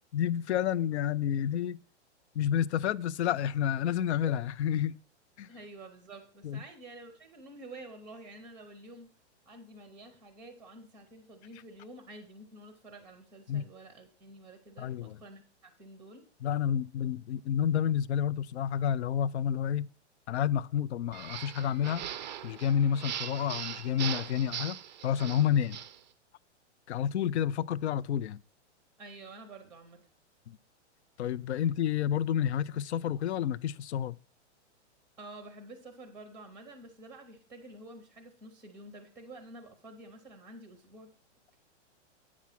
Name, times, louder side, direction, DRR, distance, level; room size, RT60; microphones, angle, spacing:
voice 1, 0.1-1.8 2.4-4.9 5.4-5.5 6.4-6.6 13.5-13.6 14.8-15.2 16.4-19.9 20.3-22.0 22.4-24.8 25.0-25.8 26.9-28.4 31.2-34.2, left 9 dB, 65° left, 0.5 m, -29 dB
voice 2, 5.5-9.1 9.5-16.2 29.0-30.1 31.6-31.7 35.2-41.1, right 2 dB, 5° right, 0.7 m, -49 dB
sound 1, 21.1-26.0, right 10 dB, 40° right, 0.4 m, -40 dB
8.5 x 6.0 x 5.8 m
hypercardioid pair, 165°, 36 cm